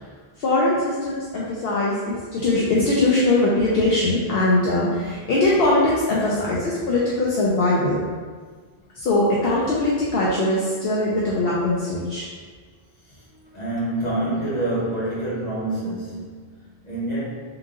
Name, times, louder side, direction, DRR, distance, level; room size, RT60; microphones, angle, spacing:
voice 1, 0.4-8.0 8.9-12.2, left 2 dB, 65° left, -5 dB, 0.8 m, -21 dB
voice 2, 13.0-17.2, right 1 dB, 40° left, -9 dB, 1.4 m, -27 dB
3.6 x 2.9 x 3.6 m, 1.5 s
omnidirectional pair, 1.1 m